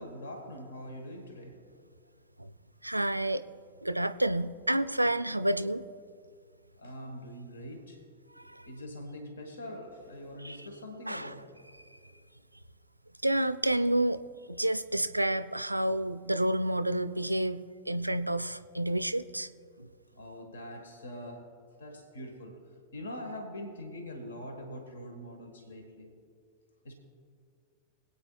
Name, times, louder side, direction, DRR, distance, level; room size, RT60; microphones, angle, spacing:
voice 1, 0.0-1.6 6.8-8.0 8.7-11.4 20.1-22.6 22.9-26.1 26.8-26.9, left 1 dB, 65° left, 4 dB, 1.3 m, -43 dB
voice 2, 2.8-3.4 3.8-5.8 10.4-10.6 11.1-11.3 13.2-14.2 14.5-19.5, right 1 dB, 85° right, 14 dB, 0.3 m, -29 dB
25.5 x 8.6 x 2.3 m, 2.2 s
figure-of-eight pair, 90°, 0 cm